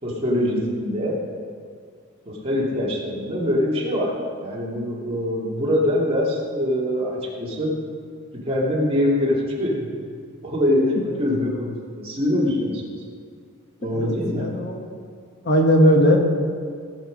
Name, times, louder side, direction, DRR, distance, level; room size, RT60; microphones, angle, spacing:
voice 1, 0.0-1.2 2.3-4.1 4.4-7.7 8.3-9.9 10.4-10.9 11.2-12.8 13.8-14.5, left 1 dB, 25° right, -4 dB, 2.4 m, -23 dB
voice 2, 10.9-11.3 13.9-14.8 15.4-16.2, equal, 50° left, 2 dB, 1.3 m, -19 dB
16.5 x 8.0 x 5.2 m, 2.1 s
head